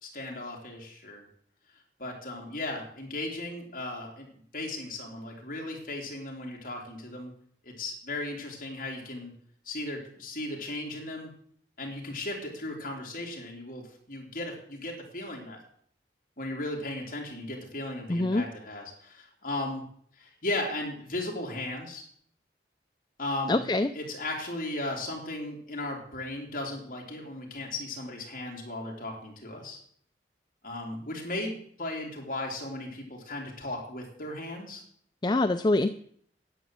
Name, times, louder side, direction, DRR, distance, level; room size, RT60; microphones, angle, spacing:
voice 1, 0.0-1.2 2.0-4.3 4.5-7.3 7.6-9.3 9.6-11.3 11.8-15.6 16.4-19.8 20.2-22.0 23.2-23.6 23.9-29.8 30.6-34.8, left 2 dB, 45° left, -1 dB, 3.4 m, -36 dB
voice 2, 18.1-18.4 23.5-23.9 35.2-35.9, left 2 dB, 25° left, 9 dB, 0.4 m, -24 dB
10.0 x 8.2 x 7.6 m, 0.63 s
head